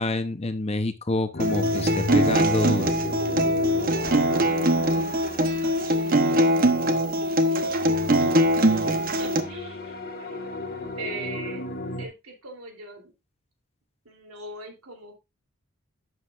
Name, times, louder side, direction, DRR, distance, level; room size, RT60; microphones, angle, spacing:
voice 1, 0.0-2.9, left 2 dB, 30° left, 10 dB, 0.7 m, -27 dB
sound 1, 1.3-6.6 7.6-12.1, left 2 dB, 45° left, 1.7 m, -34 dB
Acoustic guitar, 1.4-9.4, right 1 dB, 40° right, 0.9 m, -22 dB
voice 2, 4.3-5.1 5.6-7.2 7.5-8.4 9.2-10.5 11.0-11.6 12.0-13.1 14.0-15.1, right 2 dB, 80° right, 3 dB, 3.2 m, -41 dB
11.5 x 7.8 x 2.5 m, 0.24 s
head